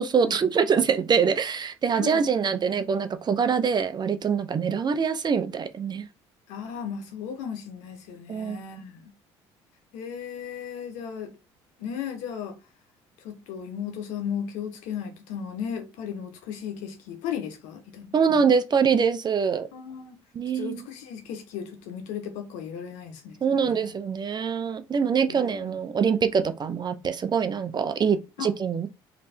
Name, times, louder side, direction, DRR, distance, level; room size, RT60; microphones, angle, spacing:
voice 1, 0.0-6.1 8.3-8.6 18.1-19.7 20.3-20.9 23.4-28.9, right 6 dB, 35° right, 0.7 m, -24 dB
voice 2, 6.5-9.1 9.9-11.3 11.8-12.6 13.2-18.1 19.7-20.2 20.5-23.9 25.3-25.7 28.4-28.5, left 8 dB, 80° left, 1.2 m, -35 dB
3.3 x 3.1 x 4.4 m
supercardioid pair, 80°, 12 cm